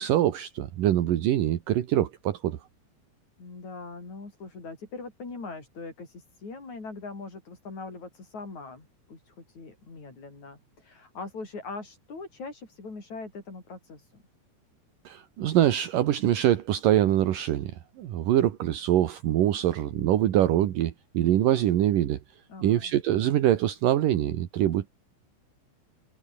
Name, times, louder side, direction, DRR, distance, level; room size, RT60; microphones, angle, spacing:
voice 1, 0.0-2.6 15.1-22.2 22.6-24.9, right 12 dB, 65° right, 2.5 m, -24 dB
voice 2, 3.4-14.2 22.5-23.0, left 3 dB, 40° left, 8.0 m, -41 dB
omnidirectional pair, 5.3 m